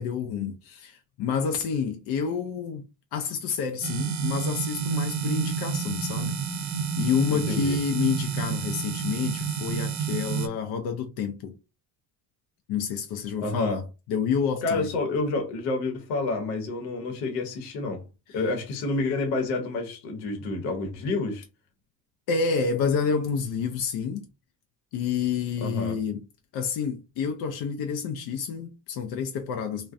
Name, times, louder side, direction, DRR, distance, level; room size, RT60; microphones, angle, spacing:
voice 1, 0.0-11.5 12.7-13.8 14.1-14.9 18.3-18.4 22.3-24.3 24.9-26.2 26.5-29.9, left 6 dB, 55° left, 0.5 m, -29 dB
sound 1, 3.8-10.5, right 6 dB, 40° right, 0.5 m, -29 dB
voice 2, 7.3-7.8 13.4-13.8 14.6-18.0 18.3-21.4 25.6-26.0, left 3 dB, 80° left, 0.9 m, -29 dB
2.3 x 2.1 x 2.4 m
hypercardioid pair, 75°, 48 cm